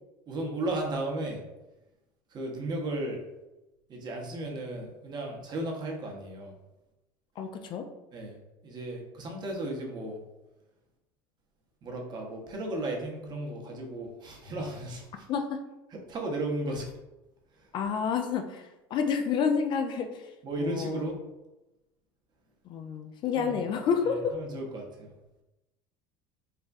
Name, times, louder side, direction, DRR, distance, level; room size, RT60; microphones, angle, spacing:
voice 1, 0.3-1.4 2.3-3.2 3.9-6.5 8.1-8.4 8.6-10.2 11.8-15.3 15.9-16.9 17.5-17.7 20.4-21.2 23.4-23.5 24.1-25.1, right 1 dB, 40° right, 0 dB, 0.8 m, -35 dB
voice 2, 7.4-7.8 15.3-15.6 17.7-20.3 20.6-21.1 22.7-24.4, left 6 dB, 45° left, 6 dB, 0.3 m, -29 dB
3.3 x 2.1 x 2.5 m, 0.99 s
hypercardioid pair, 80°, 11 cm